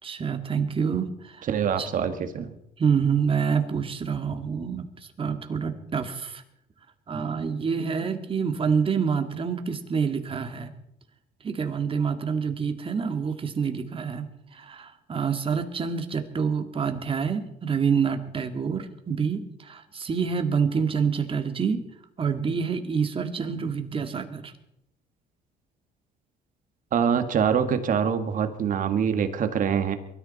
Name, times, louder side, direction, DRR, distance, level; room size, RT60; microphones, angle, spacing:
voice 1, 0.0-1.5 1.8-1.9 2.8-4.9 5.2-6.4 7.1-10.7 11.4-21.8 22.2-24.5, right 6 dB, 30° right, 6 dB, 2.0 m, -27 dB
voice 2, 1.5-2.5 26.9-30.0, right 7 dB, 50° right, 8 dB, 1.8 m, -24 dB
23.0 x 13.5 x 4.2 m, 0.78 s
cardioid pair, 110°, 17 cm